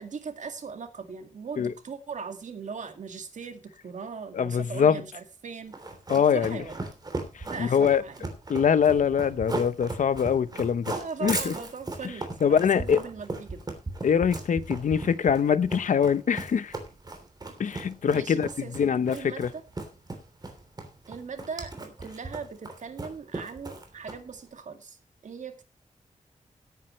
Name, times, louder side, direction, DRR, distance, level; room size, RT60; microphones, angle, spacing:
voice 1, 0.0-5.8 6.3-6.8 7.4-8.2 10.9-13.6 18.1-19.6 21.1-25.6, right 5 dB, 75° right, 2.1 m, -39 dB
voice 2, 4.3-5.0 6.1-6.6 7.3-8.0 8.5-10.9 11.2-11.5 12.4-13.0 14.0-16.7 17.6-19.5, left 7 dB, 90° left, 0.8 m, -23 dB
Run, 5.7-24.4, right 2 dB, 30° right, 3.1 m, -37 dB
17.5 x 9.1 x 3.1 m
wide cardioid pair, 165°, 13 cm